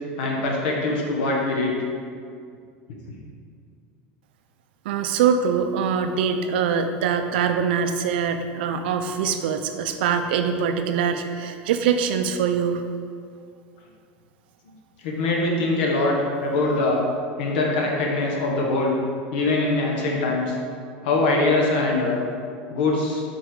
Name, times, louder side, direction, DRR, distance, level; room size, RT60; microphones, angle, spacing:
voice 1, 0.2-1.7 15.0-17.1 17.4-19.0 19.3-20.6 21.0-22.3 22.7-23.2, left 2 dB, 80° left, -1 dB, 1.2 m, -23 dB
voice 2, 4.8-12.9, right 7 dB, 85° right, 7 dB, 0.5 m, -23 dB
6.0 x 4.5 x 3.7 m, 2.2 s
supercardioid pair, 175°, 5 cm